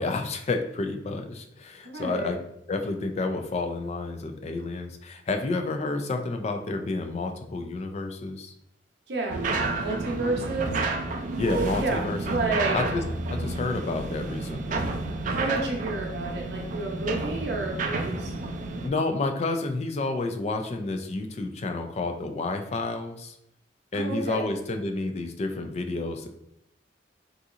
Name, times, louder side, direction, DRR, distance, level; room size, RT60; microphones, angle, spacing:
voice 1, 0.0-2.4 2.7-8.5 11.4-13.0 13.3-15.0 18.8-23.4 23.9-26.3, left 3 dB, 40° left, 5 dB, 0.3 m, -30 dB
voice 2, 1.8-2.4 9.1-10.8 11.8-12.0 12.3-12.8 15.3-18.3 23.9-24.5, right 3 dB, 70° right, 0 dB, 0.7 m, -30 dB
sound 1, 9.3-18.9, right 3 dB, 45° right, 0.4 m, -30 dB
3.8 x 2.7 x 2.4 m, 0.77 s
head